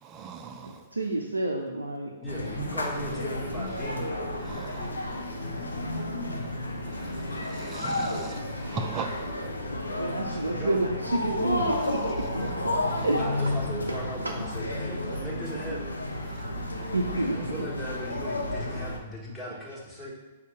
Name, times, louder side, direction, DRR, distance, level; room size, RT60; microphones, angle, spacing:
voice 1, 0.0-0.9 4.4-9.5 9.8-9.9 11.8-12.3 12.8-13.1 16.1-17.0, right 6 dB, 25° right, 5 dB, 0.6 m, -42 dB
voice 2, 0.6-2.2 10.0-12.8 13.0-13.6 13.9-14.4 16.9-17.6, right 2 dB, 85° right, 1 dB, 0.5 m, -30 dB
voice 3, 2.2-4.6 9.9-10.8 13.1-15.8 17.2-20.1, equal, ahead, -7 dB, 1.6 m, -37 dB
sound 1, 2.3-19.0, left 1 dB, 85° left, 0.7 m, -32 dB
6.7 x 2.8 x 5.0 m, 1.2 s
figure-of-eight pair, 115°, 0 cm